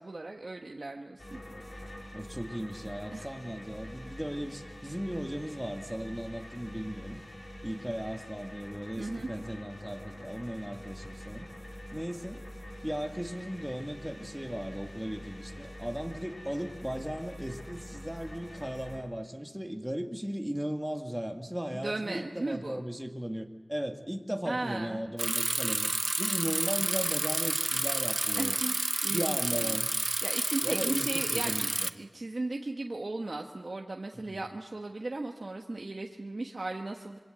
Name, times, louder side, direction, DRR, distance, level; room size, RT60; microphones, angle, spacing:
voice 1, 0.0-1.4 1.7-1.9 3.1-3.3 9.0-9.3 21.7-22.8 24.4-25.0 28.4-29.8 30.2-37.2, right 2 dB, 65° right, 2 dB, 1.4 m, -37 dB
sound 1, 1.2-19.0, equal, 60° left, 4.4 m, -46 dB
voice 2, 2.1-7.2 7.6-11.5 11.9-12.4 12.8-25.9 26.2-28.6 29.1-29.9 30.6-31.9 34.3-34.4, equal, 10° right, 3 dB, 2.0 m, -36 dB
Bicycle, 25.2-31.9, right 2 dB, 50° right, 0.8 m, -30 dB
26.0 x 24.0 x 8.0 m, 1.4 s
wide cardioid pair, 60°, 0 cm